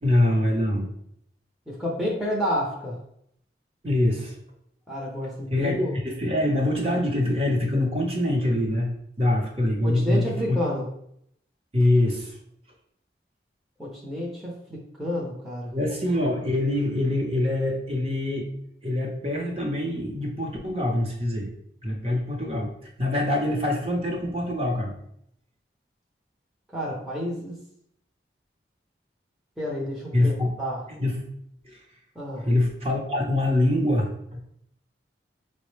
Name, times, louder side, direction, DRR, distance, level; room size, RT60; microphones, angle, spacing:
voice 1, 0.0-0.9 3.8-4.3 5.5-8.9 9.2-10.6 11.7-12.3 15.7-18.5 18.8-21.5 21.8-24.9 30.1-30.5 30.9-31.2 31.6-31.8 32.4-34.4, left 1 dB, 35° right, 0 dB, 0.8 m, -24 dB
voice 2, 1.7-3.0 4.9-5.9 9.8-10.8 13.8-15.7 26.7-27.6 29.6-30.8 32.2-32.5, equal, ahead, -5 dB, 0.7 m, -30 dB
5.7 x 2.1 x 3.1 m, 0.72 s
head